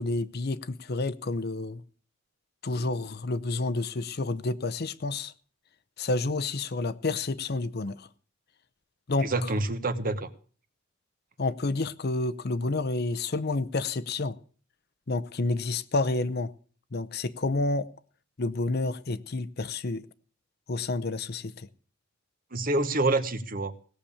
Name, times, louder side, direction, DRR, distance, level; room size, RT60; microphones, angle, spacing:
voice 1, 0.0-1.8 2.6-5.3 6.0-8.1 9.1-9.3 11.4-14.4 15.1-16.5 16.9-17.9 18.4-20.0 20.7-21.7, left 3 dB, 50° left, 0.7 m, -29 dB
voice 2, 9.2-10.3 22.5-23.7, right 2 dB, 45° right, 1.1 m, -27 dB
17.5 x 6.9 x 8.6 m
head